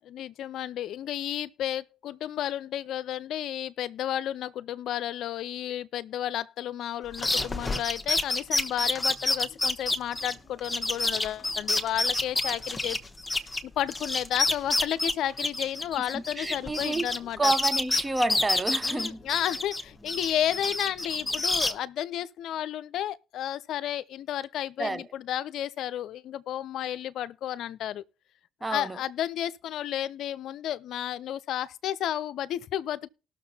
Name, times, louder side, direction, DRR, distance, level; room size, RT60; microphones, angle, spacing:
voice 1, 0.1-13.0 13.6-17.5 18.8-28.0 28.7-33.1, left 11 dB, 70° left, 0.4 m, -32 dB
sound 1, 7.1-13.6 13.9-17.2 17.4-19.8 20.1-21.7, left 2 dB, 15° left, 1.1 m, -28 dB
voice 2, 16.0-17.1 17.4-19.2 24.8-25.0 28.6-29.0, right 2 dB, 20° right, 0.7 m, -29 dB
19.0 x 6.5 x 2.7 m
supercardioid pair, 70°, 0 cm